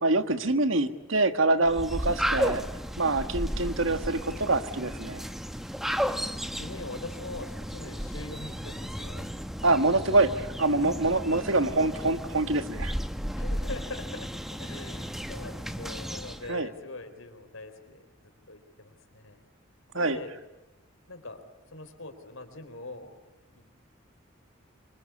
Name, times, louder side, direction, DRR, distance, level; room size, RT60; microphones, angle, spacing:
voice 1, 0.0-2.6 3.0-5.2 9.6-12.9 16.5-16.7 19.9-20.2, right 2 dB, 75° right, 10 dB, 1.6 m, -25 dB
sound 1, 1.6-16.5, equal, ahead, 0.9 m, -34 dB
voice 2, 4.3-4.8 6.0-6.2 6.5-9.3 13.4-19.4 19.9-20.3 21.1-21.4 21.7-23.1 23.6-23.7, left 2 dB, 85° left, 7 dB, 4.0 m, -43 dB
26.0 x 25.5 x 8.5 m, 1.0 s
head